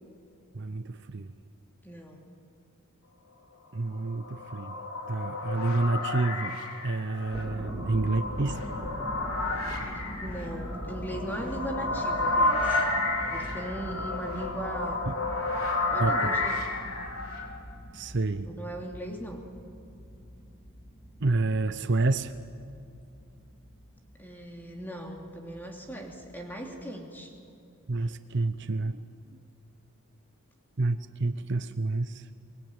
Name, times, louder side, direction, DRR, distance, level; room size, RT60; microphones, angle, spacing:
voice 1, 0.5-1.3 3.7-4.8 5.1-6.6 6.8-8.6 15.1-15.2 16.0-16.3 17.9-18.5 21.2-22.3 27.9-29.1 30.8-32.2, right 3 dB, 55° right, 11 dB, 0.7 m, -29 dB
voice 2, 1.8-2.3 9.9-12.8 13.3-15.0 15.9-16.7 18.5-19.4 24.2-27.3, right 1 dB, 10° left, 1 dB, 2.9 m, -38 dB
sound 1, 4.0-17.5, left 2 dB, 80° left, 4.2 m, -31 dB
sound 2, 7.2-26.8, equal, 30° left, 3.3 m, -43 dB
24.0 x 21.5 x 9.0 m, 2.6 s
head